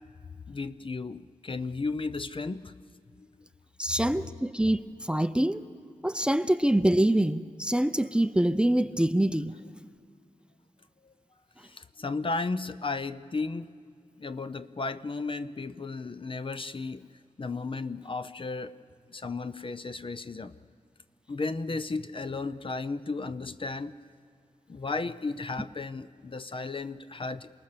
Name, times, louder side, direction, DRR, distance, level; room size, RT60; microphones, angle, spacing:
voice 1, 0.5-2.7 3.1-3.3 11.0-11.1 11.6-13.7 14.2-17.1 17.4-18.8 19.1-20.5 21.3-23.9 24.7-27.5, left 3 dB, 40° left, 12 dB, 0.6 m, -34 dB
voice 2, 3.8-5.6 6.0-9.5, right 1 dB, 5° right, 12 dB, 0.6 m, -25 dB
28.5 x 18.5 x 6.8 m, 2.3 s
wide cardioid pair, 90°, 13 cm